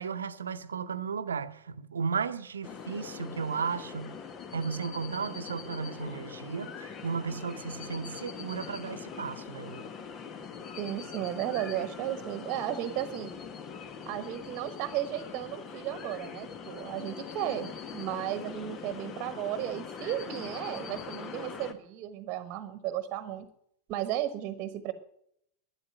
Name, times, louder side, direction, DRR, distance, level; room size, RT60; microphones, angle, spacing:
voice 1, 0.0-4.2 4.5-9.9, right 5 dB, 80° right, 0.8 m, -34 dB
sound 1, 2.6-21.7, left 6 dB, 35° left, 1.5 m, -42 dB
voice 2, 10.8-13.3 14.1-23.5 23.9-24.9, right 12 dB, 45° right, 1.2 m, -34 dB
12.5 x 9.8 x 8.9 m
figure-of-eight pair, 90°, 0 cm